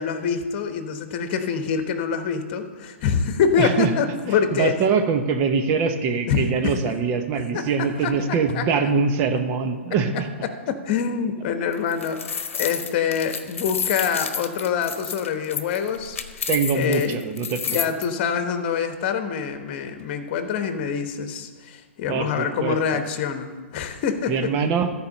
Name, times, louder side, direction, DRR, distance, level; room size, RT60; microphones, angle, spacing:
voice 1, 0.0-4.7 6.3-6.9 7.5-8.1 8.5-8.6 10.7-16.5 16.7-17.3 17.7-24.5, left 7 dB, 45° left, 8 dB, 1.1 m, -25 dB
voice 2, 3.6-3.9 4.2-10.3 16.5-17.8 22.1-23.0 24.3-24.9, right 5 dB, 35° right, 7 dB, 1.0 m, -23 dB
sound 1, 11.7-18.0, left 6 dB, 70° left, 0.9 m, -30 dB
13.5 x 4.9 x 6.6 m, 1.4 s
hypercardioid pair, 120°, 7 cm